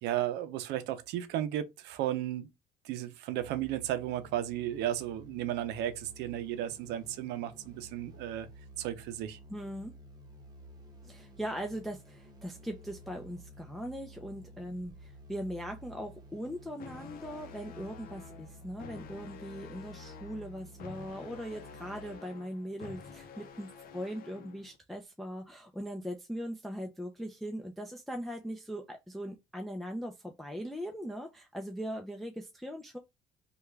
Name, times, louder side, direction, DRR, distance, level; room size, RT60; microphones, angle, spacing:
voice 1, 0.0-2.5 2.8-8.5 8.8-9.4, right 12 dB, 90° right, 0.5 m, -34 dB
sound 1, 3.3-22.2, right 1 dB, 25° right, 1.1 m, -52 dB
voice 2, 9.5-9.9 11.0-33.0, equal, ahead, 0.5 m, -40 dB
sound 2, 16.8-24.8, left 6 dB, 60° left, 0.7 m, -49 dB
3.3 x 2.3 x 3.2 m
cardioid pair, 110°, 17 cm